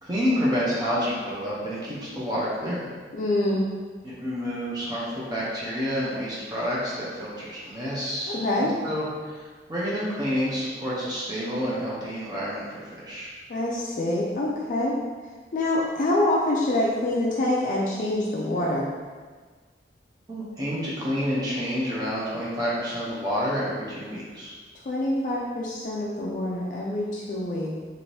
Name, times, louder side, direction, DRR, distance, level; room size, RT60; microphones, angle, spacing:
voice 1, 0.0-2.9 4.0-9.4 9.7-13.3 20.3-24.5, equal, 20° right, -7 dB, 0.5 m, -29 dB
voice 2, 3.1-3.6 8.3-8.7 13.5-15.0 15.5-18.9 24.9-27.8, left 1 dB, 45° left, -4 dB, 0.3 m, -25 dB
2.7 x 2.5 x 3.1 m, 1.5 s
head